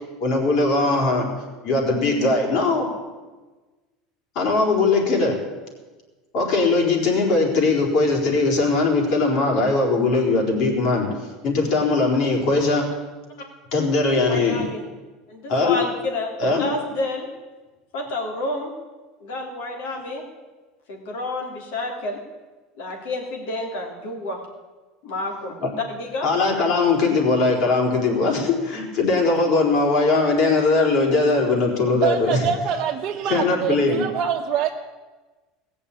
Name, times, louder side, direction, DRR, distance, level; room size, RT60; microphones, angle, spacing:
voice 1, 0.2-1.3 1.6-2.9 4.3-5.4 6.3-11.1 11.4-12.9 13.7-14.7 15.5-15.8 16.4-16.6 25.6-25.7 26.2-32.4 33.2-34.0, left 3 dB, 60° left, 0 dB, 4.3 m, -20 dB
voice 2, 14.3-14.8 15.3-17.3 17.9-18.7 19.2-20.2 20.9-22.2 22.8-24.4 25.0-26.3, left 2 dB, 80° left, 2 dB, 3.5 m, -29 dB
voice 3, 31.9-34.7, right 8 dB, 40° right, -2 dB, 1.1 m, -25 dB
17.5 x 7.0 x 8.6 m, 1.3 s
supercardioid pair, 125°, 0 cm